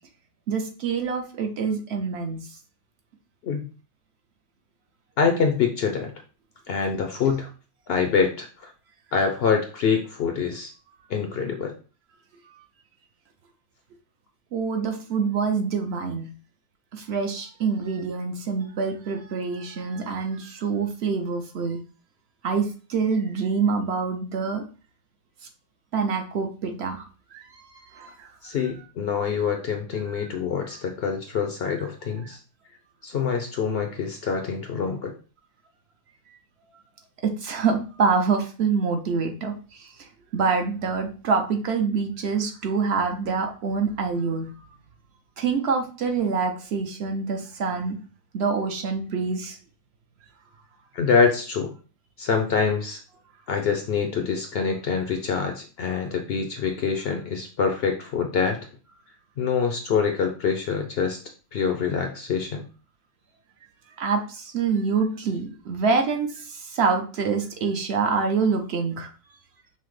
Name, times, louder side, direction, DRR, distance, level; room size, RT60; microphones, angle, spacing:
voice 1, 0.5-2.6 12.5-12.6 14.5-16.3 16.9-21.8 22.4-24.6 25.9-27.1 27.3-28.3 30.1-30.3 30.6-30.7 32.1-32.4 36.3-36.4 37.2-44.7 45.4-48.0 48.3-49.6 64.0-69.1, right 5 dB, 60° right, 4 dB, 0.8 m, -26 dB
voice 2, 5.2-6.1 6.7-7.5 7.9-8.7 9.1-10.7 11.1-11.7 28.4-32.4 33.0-35.1 50.9-51.7 52.2-53.0 53.5-58.6 59.4-61.2 61.5-62.6, left 6 dB, 65° left, 4 dB, 0.6 m, -25 dB
5.6 x 2.0 x 3.1 m, 0.36 s
omnidirectional pair, 1.4 m